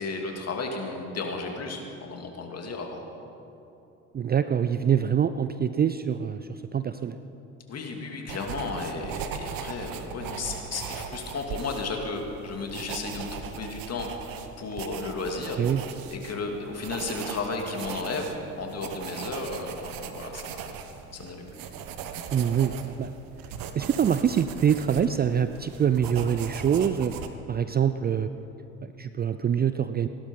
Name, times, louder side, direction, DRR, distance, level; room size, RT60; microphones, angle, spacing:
voice 1, 0.0-3.0 7.7-15.6 16.1-20.8 21.1-21.7, left 3 dB, 40° left, 2 dB, 2.6 m, -34 dB
voice 2, 4.1-7.2 15.6-15.8 22.3-23.2 23.7-27.1 27.5-28.3 28.8-30.1, right 8 dB, 25° right, 11 dB, 0.5 m, -25 dB
sound 1, 8.3-27.3, right 7 dB, 60° right, 1.2 m, -39 dB
17.0 x 11.5 x 5.4 m, 2.9 s
hypercardioid pair, 65°, 39 cm